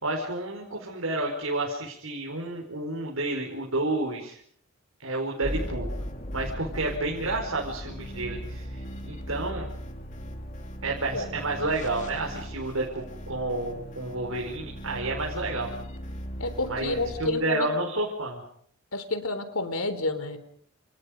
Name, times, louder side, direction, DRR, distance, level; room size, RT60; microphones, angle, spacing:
voice 1, 0.0-4.4 5.0-5.9 6.3-9.7 10.8-15.7 16.7-18.4, right 2 dB, 80° right, -1 dB, 5.2 m, -30 dB
sound 1, 5.4-17.3, equal, 35° left, 2.6 m, -38 dB
voice 2, 16.4-17.7 18.9-20.4, left 2 dB, 85° left, 11 dB, 3.7 m, -29 dB
29.5 x 29.5 x 5.3 m, 0.63 s
head